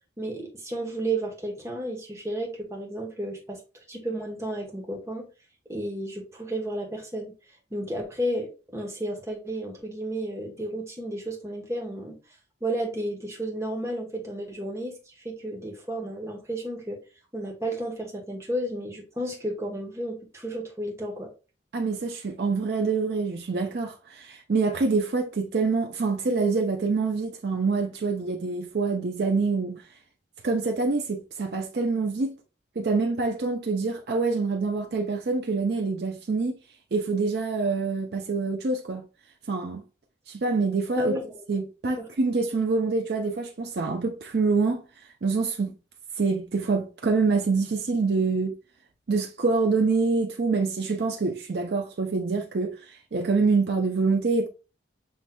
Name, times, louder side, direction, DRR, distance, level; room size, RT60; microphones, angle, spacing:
voice 1, 0.2-3.6 3.9-5.3 5.7-7.3 7.7-12.1 12.6-17.0 17.3-21.3 41.0-41.4 42.0-42.1, right 1 dB, 15° right, 1.0 m, -32 dB
voice 2, 21.7-29.8 30.4-32.3 32.8-36.6 36.9-39.0 39.5-39.8 40.3-41.2 41.5-44.8 45.2-45.7 46.2-48.5 49.1-54.5, right 4 dB, 60° right, 0.5 m, -26 dB
5.7 x 3.2 x 2.2 m
head